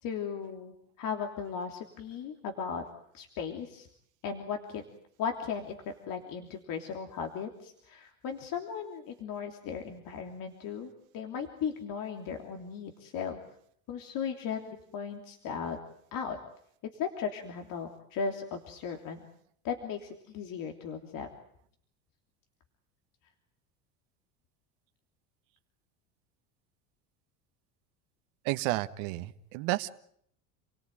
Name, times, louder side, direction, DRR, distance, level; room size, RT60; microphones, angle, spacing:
voice 1, 0.0-2.8 3.1-3.9 4.2-4.8 5.2-13.4 13.9-15.8 16.1-16.4 16.9-19.3 19.6-21.3, left 6 dB, 55° left, 4 dB, 3.3 m, -37 dB
voice 2, 28.4-29.9, right 19 dB, 70° right, 9 dB, 1.4 m, -31 dB
29.5 x 18.0 x 9.2 m, 0.68 s
supercardioid pair, 100°, 40 cm